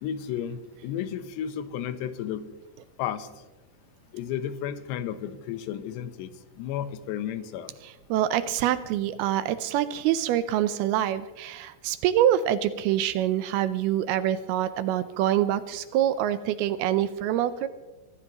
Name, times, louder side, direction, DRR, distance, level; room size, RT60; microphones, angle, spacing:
voice 1, 0.0-2.4 3.0-3.3 4.1-6.3 6.6-7.7, left 9 dB, 85° left, 11 dB, 3.1 m, -33 dB
voice 2, 7.8-17.7, right 11 dB, 80° right, 12 dB, 2.4 m, -25 dB
24.0 x 15.5 x 3.0 m, 1.1 s
omnidirectional pair, 4.8 m